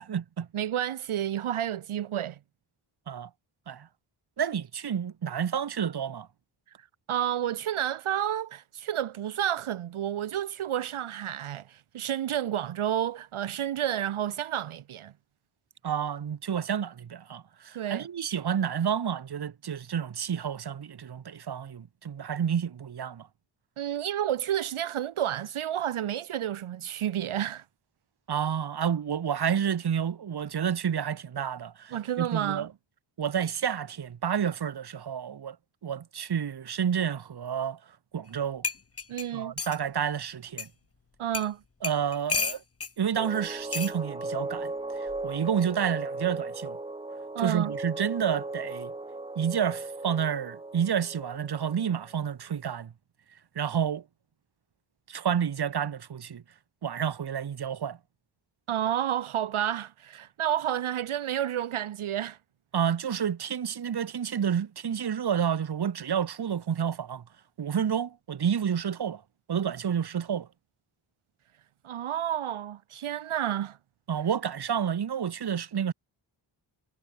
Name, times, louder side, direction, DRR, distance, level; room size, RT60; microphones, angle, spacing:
voice 1, 0.0-0.5 3.1-3.3 3.7-3.9 4.4-6.3 15.8-23.3 28.3-32.7 33.2-35.6 35.8-37.8 38.1-38.7 39.3-40.7 41.8-42.6 43.0-46.8 47.4-48.9 49.4-52.9 53.5-54.0 55.1-56.4 56.8-58.0 62.7-67.2 67.6-69.2 69.5-70.5 74.1-75.9, right 8 dB, 50° right, 1.1 m, -30 dB
voice 2, 0.5-2.4 7.1-15.1 17.7-18.1 23.8-27.6 31.9-32.7 39.1-39.5 41.2-41.6 47.3-47.7 58.7-62.4 71.8-73.8, right 11 dB, 80° right, 0.9 m, -30 dB
sound 1, 38.3-38.4 38.6-39.8 40.6-40.7 41.3-41.5 41.8-42.9 43.7-43.9 45.1-45.3, left 4 dB, 30° left, 1.3 m, -32 dB
sound 2, 43.2-52.2, right 2 dB, 10° right, 0.9 m, -37 dB
wide cardioid pair, 90°, 49 cm